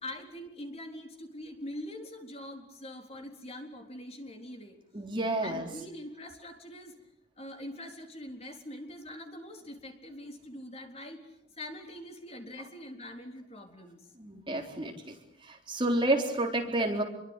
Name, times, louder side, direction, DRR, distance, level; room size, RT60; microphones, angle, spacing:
voice 1, 0.0-4.8 5.4-7.0 7.4-14.1, left 1 dB, 30° left, 4 dB, 3.9 m, -43 dB
voice 2, 4.9-5.7 14.2-15.1 15.4-17.0, right 1 dB, 25° right, 2 dB, 3.9 m, -30 dB
28.5 x 23.5 x 8.3 m, 0.77 s
head